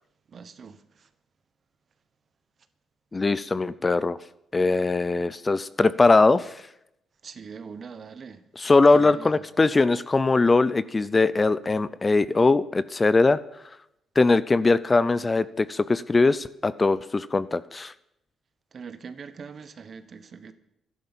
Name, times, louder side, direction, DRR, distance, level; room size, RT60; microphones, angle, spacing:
voice 1, 0.3-1.1 7.2-8.4 8.9-9.4 18.7-20.5, right 5 dB, 45° right, 1.2 m, -42 dB
voice 2, 3.1-4.2 4.5-6.5 8.6-13.4 14.2-17.9, left 3 dB, 25° left, 0.5 m, -21 dB
12.0 x 11.0 x 7.3 m
cardioid pair, 90°, 0 cm